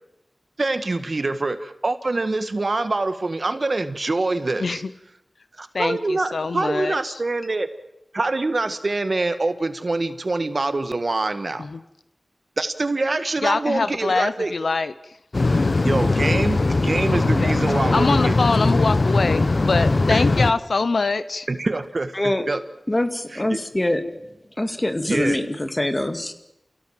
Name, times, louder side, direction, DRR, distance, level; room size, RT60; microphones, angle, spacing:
voice 1, 0.6-4.8 5.6-7.7 8.1-11.7 12.6-14.5 15.8-18.3 20.1-20.2 21.5-22.6 23.3-23.6 25.1-25.4, right 2 dB, 60° right, 10 dB, 1.7 m, -25 dB
voice 2, 4.6-4.9 5.7-7.2 11.6-11.8 13.4-15.2 17.4-17.5 17.9-21.5, left 4 dB, 85° left, 14 dB, 0.9 m, -24 dB
sound 1, 15.3-20.5, left 3 dB, 60° left, 1.1 m, -20 dB
voice 3, 22.9-24.0 24.6-26.3, left 1 dB, 30° left, 8 dB, 2.3 m, -24 dB
29.0 x 17.0 x 7.5 m, 0.87 s
wide cardioid pair, 45°, 0 cm